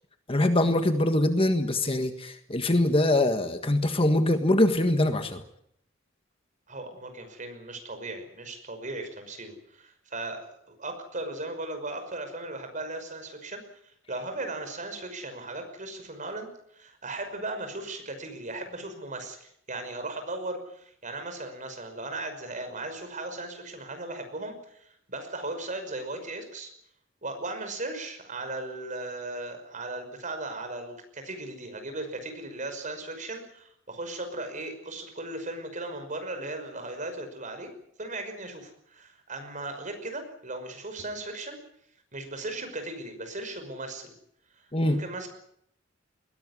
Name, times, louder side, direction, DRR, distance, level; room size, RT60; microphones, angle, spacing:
voice 1, 0.3-5.4 44.7-45.0, left 1 dB, 30° left, 8 dB, 1.6 m, -23 dB
voice 2, 6.7-26.7 27.2-37.7 38.0-41.6 42.1-44.1 44.6-45.3, right 2 dB, 40° right, 7 dB, 5.7 m, -37 dB
21.5 x 17.5 x 9.8 m, 0.71 s
head